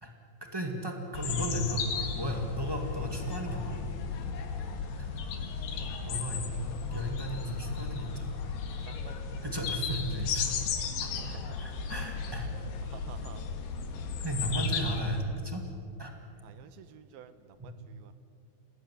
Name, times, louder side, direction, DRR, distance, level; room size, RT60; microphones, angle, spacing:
voice 1, 0.5-1.8 2.1-3.8 5.0-5.1 6.0-8.4 9.4-10.5 11.0-12.5 14.2-15.6 16.0-16.1, right 1 dB, 25° right, 2 dB, 0.5 m, -35 dB
sound 1, 1.1-15.2, left 6 dB, 85° left, 3.9 m, -35 dB
voice 2, 5.3-6.2 8.6-9.5 11.1-11.5 12.8-13.5 16.4-18.1, right 9 dB, 75° right, 11 dB, 2.9 m, -52 dB
27.5 x 18.5 x 9.6 m, 2.4 s
omnidirectional pair, 4.6 m